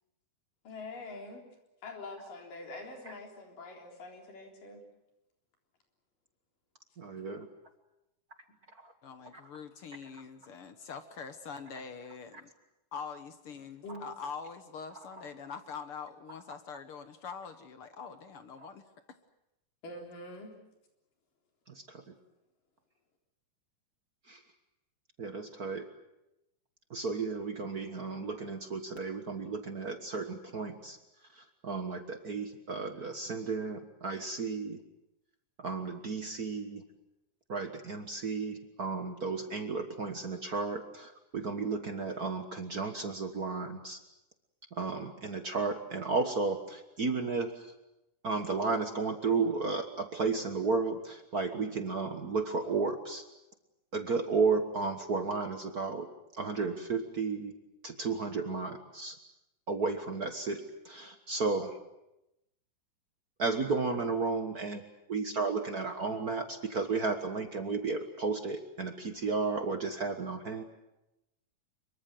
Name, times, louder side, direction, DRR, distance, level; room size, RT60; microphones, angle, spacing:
voice 1, 0.6-1.5 1.8-4.8 13.8-14.0 19.8-20.6, left 2 dB, 90° left, 2 dB, 5.5 m, -44 dB
voice 2, 7.0-7.5 8.8-8.9 21.7-22.0 24.3-24.4 25.2-25.9 26.9-31.0 31.3-34.8 35.6-36.8 37.5-44.0 44.7-47.7 48.2-53.2 53.9-56.1 56.4-57.5 57.8-59.2 59.7-61.7 63.4-64.8 65.1-70.6, right 4 dB, 50° right, 6 dB, 1.1 m, -33 dB
voice 3, 9.0-12.5 12.9-18.9, left 6 dB, 60° left, 9 dB, 1.6 m, -44 dB
25.0 x 23.0 x 7.7 m, 0.90 s
omnidirectional pair, 3.7 m